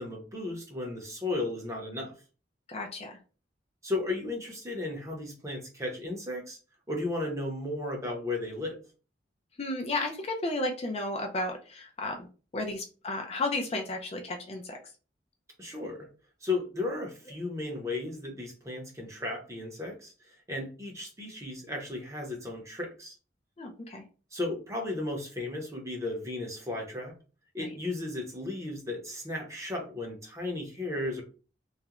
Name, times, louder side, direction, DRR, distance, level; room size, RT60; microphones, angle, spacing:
voice 1, 0.0-2.1 3.8-6.6 6.9-8.8 15.6-16.1 16.4-23.1 24.3-27.1 27.5-31.2, left 2 dB, 15° right, 0 dB, 0.7 m, -35 dB
voice 2, 2.7-3.2 9.6-12.3 12.5-14.8 23.6-24.0 27.6-27.8, left 2 dB, 35° left, 2 dB, 0.4 m, -33 dB
2.4 x 2.1 x 2.9 m, 0.36 s
head